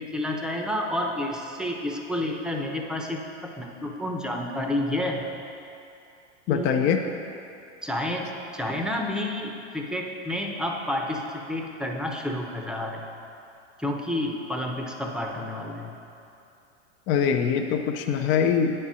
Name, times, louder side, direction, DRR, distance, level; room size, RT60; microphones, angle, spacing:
voice 1, 0.0-5.2 6.5-7.0 7.8-13.1 13.8-16.0, left 1 dB, ahead, 1 dB, 0.7 m, -30 dB
voice 2, 6.5-7.0 17.1-18.7, left 7 dB, 35° left, 4 dB, 0.5 m, -23 dB
8.6 x 4.4 x 6.1 m, 2.7 s
hypercardioid pair, 105°, 36 cm